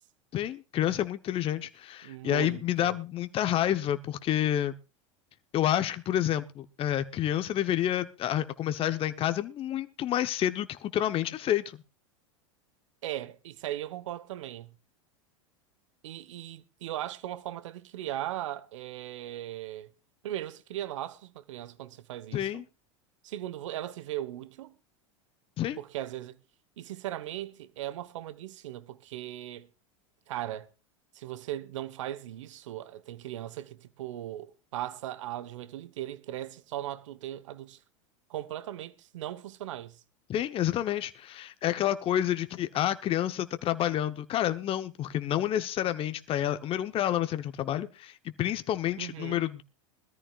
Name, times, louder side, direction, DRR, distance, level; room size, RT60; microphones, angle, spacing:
voice 1, 0.3-4.7 5.5-11.8 22.3-22.6 25.6-25.8 40.3-49.6, left 11 dB, 35° left, 0.9 m, -29 dB
voice 2, 2.0-3.0 13.0-14.8 16.0-19.9 20.2-22.6 23.2-24.7 25.8-26.4 26.8-29.7 30.3-30.7 31.1-37.8 38.3-40.0 49.0-49.4, right 13 dB, 75° right, 1.3 m, -38 dB
21.5 x 13.5 x 2.4 m
hypercardioid pair, 100°, 16 cm